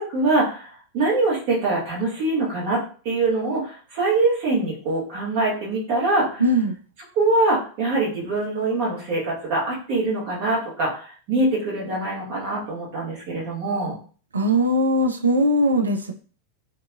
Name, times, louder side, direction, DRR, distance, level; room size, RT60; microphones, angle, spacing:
voice 1, 0.0-6.4 7.1-14.0, right 2 dB, 45° right, -5 dB, 1.2 m, -23 dB
voice 2, 6.4-6.7 14.3-16.1, equal, 75° right, 4 dB, 0.4 m, -20 dB
2.7 x 2.3 x 2.4 m, 0.40 s
figure-of-eight pair, 90°, 0 cm